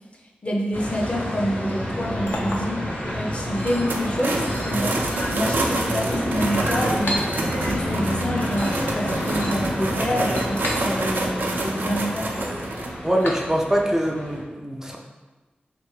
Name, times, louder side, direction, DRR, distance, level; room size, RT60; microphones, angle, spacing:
voice 1, 0.4-2.9 3.1-5.1 5.3-7.3 7.6-12.5, equal, 35° left, 0 dB, 0.6 m, -27 dB
sound 1, 0.7-14.4, equal, 60° left, 1.0 m, -29 dB
Chink clink, 1.8-13.9, left 1 dB, 75° left, 0.6 m, -36 dB
sound 2, 3.6-12.9, right 2 dB, 70° right, 0.5 m, -28 dB
voice 2, 13.0-15.0, equal, 15° right, 0 dB, 0.4 m, -23 dB
3.3 x 3.0 x 3.1 m, 1.2 s
wide cardioid pair, 70°, 3 cm